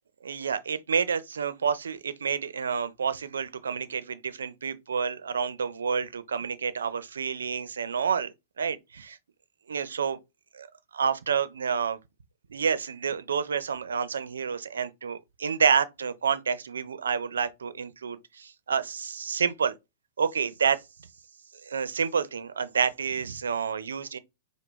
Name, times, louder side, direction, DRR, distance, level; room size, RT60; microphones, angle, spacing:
voice 1, 0.2-8.3 8.6-9.2 9.7-10.2 10.5-10.7 10.9-12.0 12.5-19.8 20.2-20.8 21.7-24.2, right 6 dB, 85° right, 0.6 m, -29 dB
5.0 x 2.2 x 3.5 m
hypercardioid pair, 120°, 0 cm